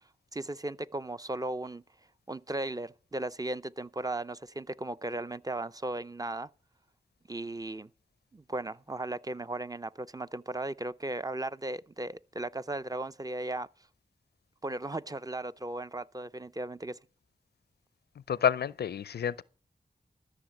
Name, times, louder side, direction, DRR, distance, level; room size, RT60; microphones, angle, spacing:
voice 1, 0.3-1.8 2.3-6.5 7.3-7.9 8.3-13.7 14.6-17.0, right 2 dB, 20° right, 0.5 m, -36 dB
voice 2, 18.3-19.4, left 8 dB, 90° left, 0.5 m, -29 dB
13.5 x 6.4 x 7.8 m
cardioid pair, 45°, 16 cm